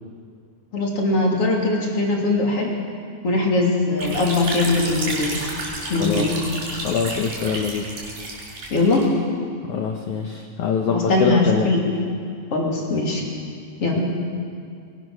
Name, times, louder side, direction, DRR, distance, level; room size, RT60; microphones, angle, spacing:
voice 1, 0.7-2.7 3.2-5.4 5.9-6.4 8.7-9.1 10.9-11.9 12.5-13.2 13.8-14.1, left 2 dB, 35° left, -2 dB, 3.2 m, -21 dB
sound 1, 4.0-9.0, right 2 dB, 50° right, 7.0 m, -31 dB
voice 2, 6.8-7.9 9.6-11.7 13.9-14.1, left 6 dB, 85° left, 3 dB, 1.7 m, -24 dB
24.0 x 22.0 x 6.3 m, 2.2 s
omnidirectional pair, 5.1 m